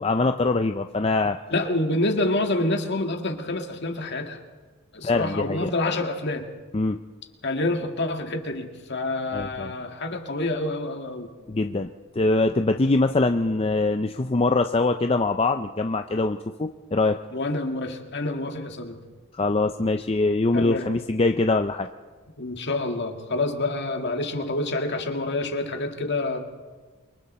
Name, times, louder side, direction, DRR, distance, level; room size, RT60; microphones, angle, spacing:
voice 1, 0.0-1.4 5.0-5.7 6.7-7.0 9.3-9.7 11.5-11.9 12.1-17.2 19.3-21.9, left 3 dB, 25° left, 7 dB, 0.5 m, -23 dB
voice 2, 1.5-4.4 4.9-6.5 7.4-11.3 17.3-19.0 20.5-20.9 22.4-26.4, left 2 dB, 55° left, 5 dB, 2.0 m, -27 dB
29.0 x 23.5 x 4.3 m, 1.4 s
head